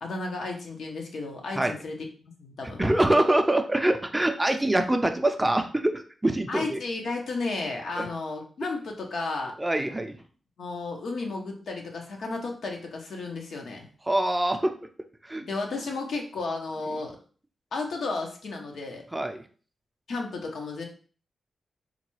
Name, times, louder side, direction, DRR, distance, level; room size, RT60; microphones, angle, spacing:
voice 1, 0.0-2.8 6.5-9.5 10.6-13.9 15.5-17.2 17.7-19.0 20.1-20.8, left 3 dB, 75° left, 1 dB, 0.8 m, -33 dB
voice 2, 2.8-6.8 8.0-8.1 9.6-10.1 14.1-14.7 15.2-15.5 19.1-19.4, right 1 dB, 15° right, 6 dB, 0.4 m, -24 dB
3.8 x 2.3 x 3.1 m, 0.41 s
cardioid pair, 70°, 0 cm